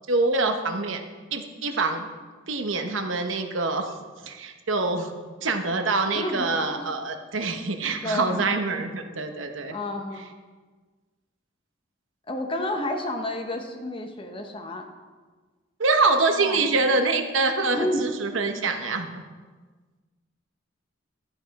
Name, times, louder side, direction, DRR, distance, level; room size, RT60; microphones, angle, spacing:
voice 1, 0.1-1.0 1.3-2.1 2.5-3.9 4.2-5.1 5.4-9.7 15.8-19.2, right 3 dB, 75° right, 6 dB, 1.0 m, -25 dB
voice 2, 6.1-6.9 8.0-8.5 9.7-10.3 12.3-14.8 16.4-16.9 17.8-18.1, left 1 dB, 25° left, 4 dB, 1.0 m, -30 dB
12.0 x 8.1 x 4.1 m, 1.4 s
head